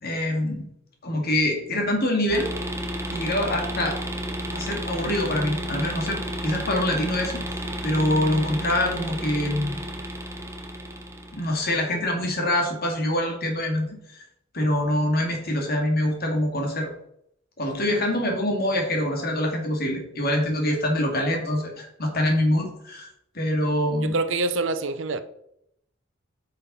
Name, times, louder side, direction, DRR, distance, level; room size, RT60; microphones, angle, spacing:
voice 1, 0.0-0.7 1.0-2.5 3.1-4.0 4.5-7.5 7.8-9.8 11.3-13.9 14.5-16.9 17.6-23.1 23.3-24.2, left 1 dB, 50° left, 2.3 m, -25 dB
sound 1, 2.3-11.8, equal, 15° right, 1.2 m, -32 dB
voice 2, 24.0-25.2, right 3 dB, 65° right, 0.7 m, -25 dB
9.6 x 5.7 x 4.3 m
head